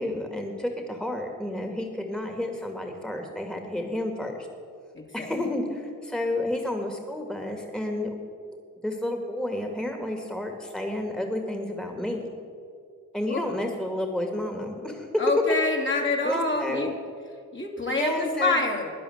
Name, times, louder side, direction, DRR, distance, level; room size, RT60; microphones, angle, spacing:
voice 1, 0.0-4.5 5.1-8.2 8.5-8.6 8.8-12.3 13.1-15.1 16.2-16.9 17.9-18.6, left 1 dB, ahead, 3 dB, 2.1 m, -31 dB
voice 2, 4.9-5.4 13.3-13.6 15.2-16.9 17.5-18.9, left 2 dB, 30° left, 1 dB, 2.5 m, -27 dB
11.5 x 10.0 x 8.0 m, 2.3 s
supercardioid pair, 45°, 37 cm